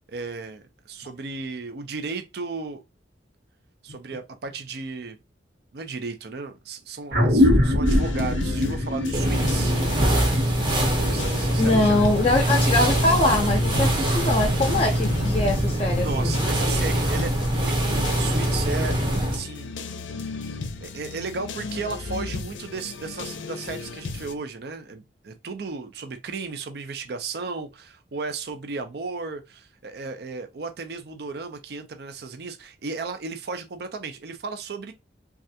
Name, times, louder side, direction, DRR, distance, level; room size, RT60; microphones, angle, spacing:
voice 1, 0.1-2.8 3.8-5.2 5.7-9.8 10.9-12.0 15.9-19.0 19.3-19.8 20.1-20.3 20.8-34.9, right 4 dB, 60° right, 0.4 m, -34 dB
sound 1, 7.1-12.0, left 1 dB, 75° right, 1.1 m, -23 dB
sound 2, 7.9-24.3, left 4 dB, 85° left, 0.5 m, -35 dB
sound 3, 9.1-19.4, right 1 dB, 25° right, 0.7 m, -23 dB
voice 2, 11.6-16.4, left 2 dB, 30° left, 0.5 m, -23 dB
3.2 x 2.3 x 2.7 m
head